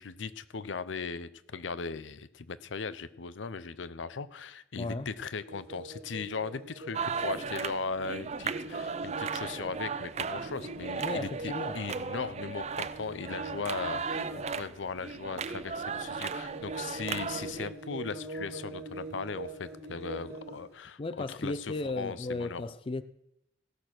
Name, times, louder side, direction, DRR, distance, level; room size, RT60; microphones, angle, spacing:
voice 1, 0.0-22.6, left 5 dB, 80° left, 0.6 m, -38 dB
voice 2, 4.8-5.1 11.0-11.8 21.0-23.0, left 2 dB, 30° left, 0.4 m, -35 dB
sound 1, 5.5-10.0 10.3-20.7, right 2 dB, 60° right, 2.1 m, -44 dB
sound 2, 6.9-17.7, right 5 dB, 35° right, 0.4 m, -36 dB
16.5 x 6.6 x 6.0 m
head